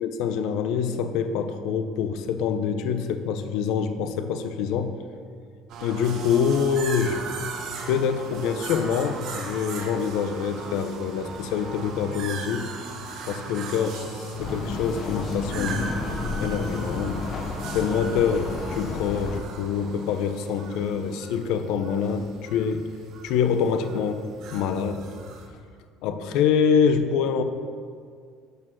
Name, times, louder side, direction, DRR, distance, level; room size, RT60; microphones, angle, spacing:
voice 1, 0.0-5.0 5.8-7.2 7.9-12.7 13.3-16.0 16.4-17.3 17.7-22.9 23.2-25.1 26.0-27.4, left 7 dB, 70° left, 9 dB, 0.8 m, -25 dB
sound 1, 5.7-25.5, right 3 dB, 55° right, 1.5 m, -37 dB
sound 2, 14.4-19.4, left 4 dB, 40° left, 0.8 m, -32 dB
12.0 x 6.8 x 6.3 m, 2.1 s
cardioid pair, 155°, 0 cm